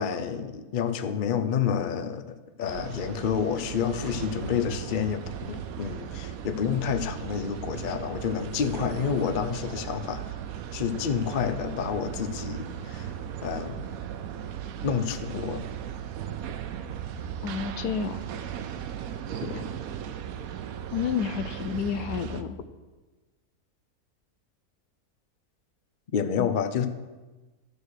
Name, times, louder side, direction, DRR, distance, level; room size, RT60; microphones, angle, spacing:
voice 1, 0.0-10.3 10.7-13.1 13.4-13.8 14.8-15.6 19.4-19.7 26.1-26.9, left 7 dB, 55° left, 9 dB, 0.6 m, -29 dB
sound 1, 2.6-22.4, right 9 dB, 70° right, 1.0 m, -37 dB
voice 2, 17.4-18.2 20.9-22.6 26.4-26.5, left 7 dB, 80° left, 11 dB, 1.2 m, -30 dB
14.0 x 6.4 x 4.9 m, 1.2 s
omnidirectional pair, 1.7 m